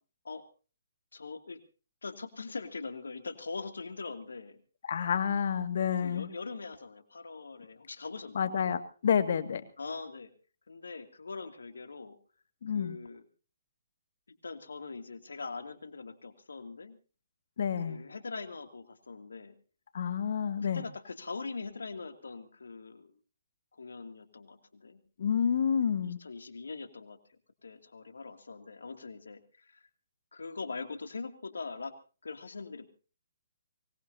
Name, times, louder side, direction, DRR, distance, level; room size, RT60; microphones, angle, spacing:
voice 1, 1.1-1.6 2.0-4.6 6.0-8.5 9.8-10.3 10.7-12.2 12.7-13.2 14.4-17.0 17.8-19.6 20.6-23.1 23.7-25.0 26.0-29.8 30.3-31.9 32.2-32.9, left 4 dB, 80° left, 7 dB, 2.6 m, -42 dB
voice 2, 4.9-6.3 8.4-9.6 12.6-13.0 17.6-18.0 19.9-20.8 25.2-26.2, left 7 dB, 60° left, 10 dB, 2.0 m, -29 dB
24.5 x 19.5 x 2.8 m, 0.37 s
hypercardioid pair, 140°, 0 cm